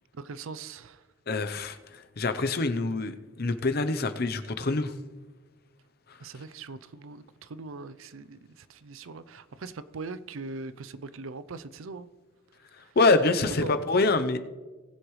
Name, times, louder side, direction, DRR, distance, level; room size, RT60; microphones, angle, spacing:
voice 1, 0.1-1.1 6.2-12.1 12.7-13.0 13.6-13.7, right 4 dB, 80° right, 0.5 m, -41 dB
voice 2, 1.3-4.9 13.0-14.4, left 3 dB, 50° left, 0.7 m, -25 dB
19.0 x 7.9 x 3.2 m
head